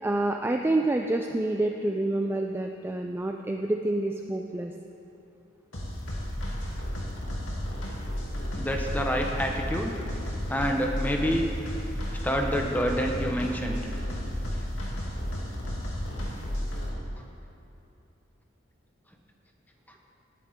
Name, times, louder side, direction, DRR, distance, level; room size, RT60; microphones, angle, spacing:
voice 1, 0.0-4.7, right 2 dB, 10° right, 3 dB, 0.4 m, -28 dB
sound 1, 5.7-16.9, equal, 70° left, 2.6 m, -33 dB
voice 2, 8.5-10.0 10.5-11.4 12.2-13.8, equal, 10° left, 2 dB, 1.0 m, -27 dB
17.5 x 10.0 x 3.7 m, 2.8 s
head